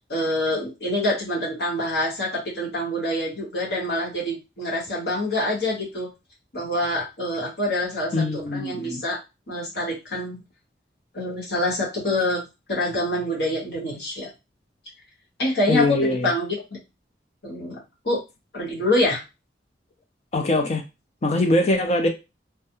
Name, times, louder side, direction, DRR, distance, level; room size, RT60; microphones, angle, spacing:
voice 1, 0.1-6.1 6.5-9.2 9.5-10.4 11.1-12.4 12.7-14.3 15.4-16.5 17.4-17.8 18.0-18.2 18.5-19.2, left 1 dB, 65° left, -4 dB, 1.1 m, -26 dB
voice 2, 8.1-9.0 15.7-16.3 20.3-20.8 21.2-22.1, left 1 dB, 35° left, 5 dB, 0.4 m, -22 dB
2.3 x 2.2 x 2.9 m, 0.25 s
head